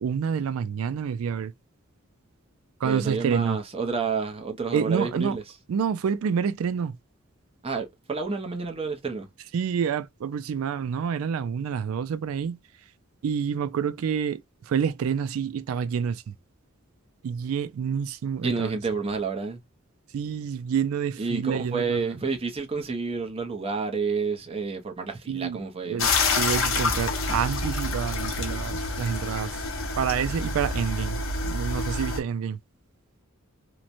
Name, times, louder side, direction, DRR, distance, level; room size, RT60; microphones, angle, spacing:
voice 1, 0.0-1.5 2.8-3.6 4.7-5.4 5.7-6.9 9.5-12.6 13.2-16.3 17.2-18.7 20.1-22.0 25.3-25.6 25.9-26.1 26.4-29.6 30.0-32.6, right 7 dB, 90° right, 0.3 m, -28 dB
voice 2, 2.8-5.4 7.6-9.3 18.4-19.6 21.2-26.0, right 4 dB, 30° right, 0.6 m, -29 dB
sound 1, 26.0-32.2, left 3 dB, 70° left, 0.8 m, -27 dB
3.0 x 2.1 x 2.5 m
head